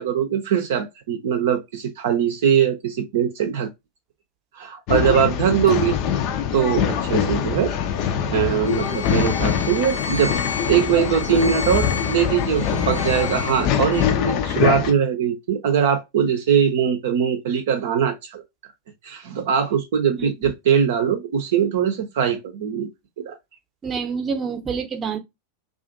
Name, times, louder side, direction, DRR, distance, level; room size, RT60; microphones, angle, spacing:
voice 1, 0.0-3.7 4.6-6.0 6.5-7.7 8.3-10.3 10.7-18.4 19.0-22.9 23.2-23.4, right 8 dB, 55° right, 0.6 m, -21 dB
Male speech man speaking / Chatter / Rattle, 4.9-14.9, left 8 dB, 40° left, 0.5 m, -23 dB
Bowed string instrument, 8.6-14.1, left 5 dB, 85° left, 0.8 m, -32 dB
voice 2, 23.8-25.2, right 5 dB, 20° right, 0.7 m, -27 dB
2.5 x 2.4 x 2.5 m
figure-of-eight pair, 90°, 0 cm